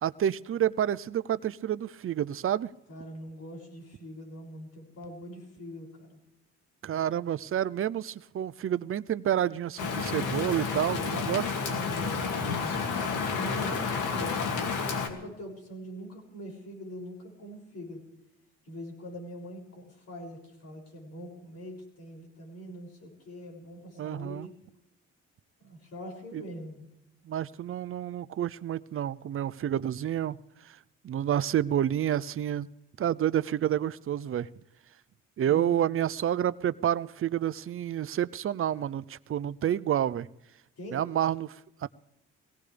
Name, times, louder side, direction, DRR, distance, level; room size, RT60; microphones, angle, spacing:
voice 1, 0.0-2.7 6.8-11.5 13.7-13.8 24.0-24.5 26.3-26.4 27.3-30.8 31.0-32.7 33.0-34.5 35.4-40.3 40.9-41.9, right 10 dB, 45° right, 17 dB, 0.6 m, -29 dB
voice 2, 2.9-6.2 11.0-12.7 13.1-18.0 18.6-24.5 25.6-26.9 35.4-35.9 40.8-41.0, equal, 55° left, 0 dB, 6.7 m, -43 dB
Rain, 9.8-15.1, left 5 dB, 85° left, 2.4 m, -30 dB
22.0 x 17.0 x 3.4 m, 0.87 s
cardioid pair, 90°, 30 cm